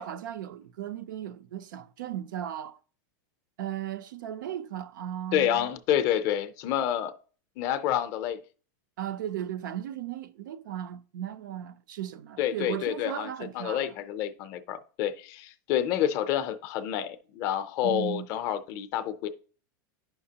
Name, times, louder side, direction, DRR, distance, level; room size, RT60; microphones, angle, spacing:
voice 1, 0.0-2.8 3.6-5.7 9.0-13.9 17.8-18.3, right 11 dB, 90° right, 0.5 m, -36 dB
voice 2, 5.3-7.1 7.6-8.4 12.4-19.3, left 10 dB, 30° left, 0.4 m, -28 dB
9.4 x 5.7 x 2.8 m
supercardioid pair, 180°, 10 cm